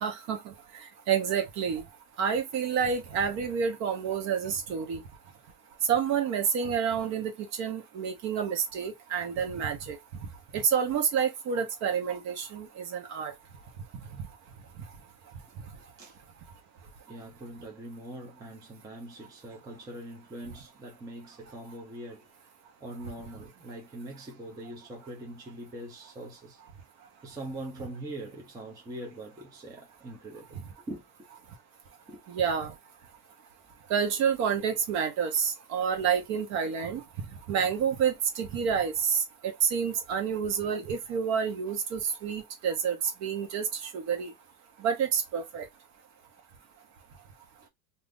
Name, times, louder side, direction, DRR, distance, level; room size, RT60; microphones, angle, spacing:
voice 1, 0.0-1.8 2.2-5.0 5.9-10.0 10.5-13.3 32.3-32.7 33.9-37.0 37.5-44.3 44.8-45.7, right 7 dB, 40° right, 0.8 m, -29 dB
voice 2, 17.1-22.3 22.8-26.6 27.2-31.0 32.1-32.2 47.6-47.7, right 1 dB, 10° right, 0.5 m, -42 dB
2.6 x 2.5 x 3.4 m
supercardioid pair, 155°, 43 cm